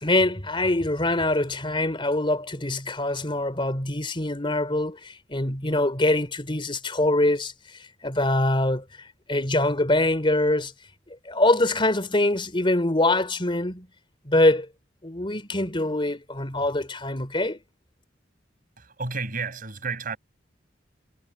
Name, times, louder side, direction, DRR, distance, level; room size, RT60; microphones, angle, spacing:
voice 1, 0.0-7.5 8.0-8.8 9.3-10.7 11.1-13.9 14.3-14.7 15.0-17.6, left 1 dB, 25° left, 3.5 m, -24 dB
voice 2, 18.8-20.2, right 4 dB, 50° right, 6.5 m, -31 dB
head